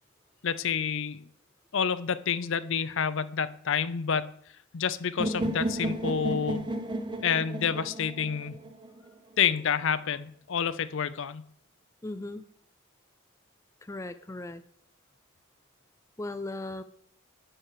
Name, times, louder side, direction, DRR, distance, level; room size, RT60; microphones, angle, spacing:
voice 1, 0.4-1.3 1.7-4.3 4.7-6.7 7.2-8.6 9.4-11.4, left 7 dB, 60° left, 14 dB, 0.5 m, -28 dB
sound 1, 5.2-9.1, right 1 dB, 20° right, 0.7 m, -33 dB
voice 2, 12.0-12.4 13.8-14.6 16.2-16.8, left 2 dB, 15° left, 10 dB, 0.4 m, -37 dB
9.9 x 4.6 x 6.6 m, 0.64 s
head